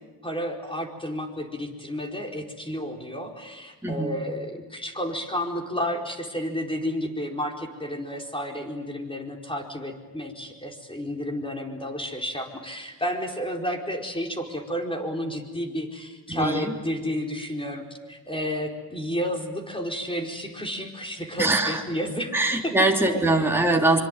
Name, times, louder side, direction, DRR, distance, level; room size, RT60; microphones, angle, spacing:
voice 1, 0.2-22.3 22.6-22.7, equal, 15° left, 2 dB, 4.8 m, -31 dB
voice 2, 3.8-4.2 16.3-16.7 21.4-21.8 22.3-24.0, right 2 dB, 5° right, 0 dB, 3.5 m, -22 dB
25.0 x 24.5 x 9.2 m, 1.2 s
cardioid pair, 85°, 35 cm